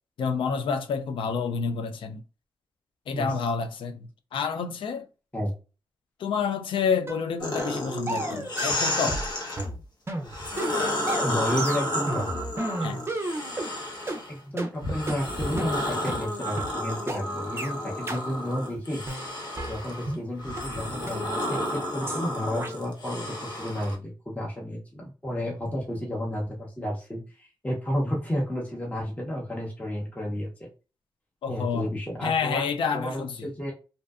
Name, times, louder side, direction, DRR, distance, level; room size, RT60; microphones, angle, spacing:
voice 1, 0.2-2.2 3.1-5.1 6.2-9.2 12.8-13.0 31.4-31.9 32.2-33.3, left 5 dB, 85° left, 0.3 m, -29 dB
voice 2, 3.1-3.5 5.3-5.5 11.2-12.3 14.3-19.1 19.7-30.7 31.5-32.7 32.9-33.7, equal, 15° left, 0.7 m, -32 dB
sound 1, 7.1-7.2 7.6-7.8 8.1-9.3 9.6-13.7 14.1-14.2 14.6-14.7 15.1-15.2 15.6-15.7 16.1-16.2 16.6-16.7 17.1-17.2 17.6-17.7 18.1-18.2 18.6-18.7 19.1-20.2 20.6-20.7 21.1-21.2 21.6-21.7 22.1-22.2 22.6-22.7, right 1 dB, 30° right, 0.5 m, -32 dB
sound 2, 7.4-9.7 10.2-14.3 14.8-24.0, left 1 dB, 55° left, 0.8 m, -31 dB
2.6 x 2.1 x 2.3 m
cardioid pair, 85°, 8 cm